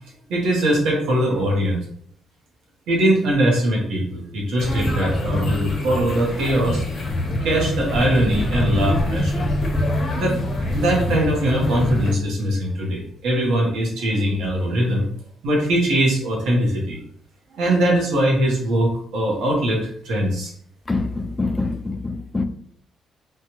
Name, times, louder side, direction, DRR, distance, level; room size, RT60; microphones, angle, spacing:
voice 1, 0.3-1.8 2.9-6.8 7.4-9.6 10.1-10.4 10.7-15.1 15.4-17.0 17.5-20.5, right 1 dB, 85° right, 1.0 m, -21 dB
sound 1, 4.6-12.1, left 1 dB, 50° left, 0.9 m, -24 dB
voice 2, 20.9-22.4, left 3 dB, 20° left, 0.3 m, -25 dB
3.2 x 2.3 x 2.9 m
cardioid pair, 90°, 0 cm